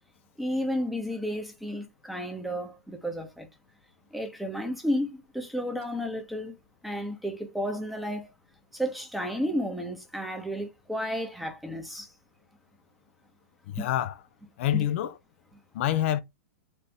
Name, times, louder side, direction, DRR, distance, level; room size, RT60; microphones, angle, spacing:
voice 1, 0.4-3.5 4.1-6.6 6.8-8.3 8.7-12.1 13.8-13.9 14.7-14.9, equal, ahead, 1.1 m, -32 dB
voice 2, 13.7-14.2 14.6-15.1 15.7-16.2, left 12 dB, 60° left, 0.6 m, -26 dB
4.3 x 2.7 x 3.5 m
hypercardioid pair, 120°, 8 cm